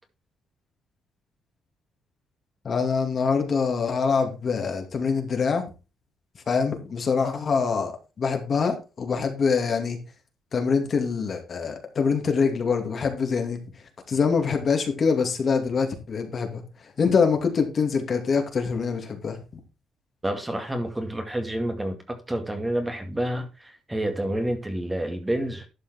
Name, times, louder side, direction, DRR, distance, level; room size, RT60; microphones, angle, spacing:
voice 1, 2.6-5.6 6.5-10.0 10.5-13.6 14.1-16.6 17.0-19.4, left 5 dB, 45° left, 2.5 m, -24 dB
voice 2, 20.2-25.7, right 1 dB, 15° right, 2.1 m, -29 dB
12.0 x 5.7 x 4.4 m
cardioid pair, 90°, 0 cm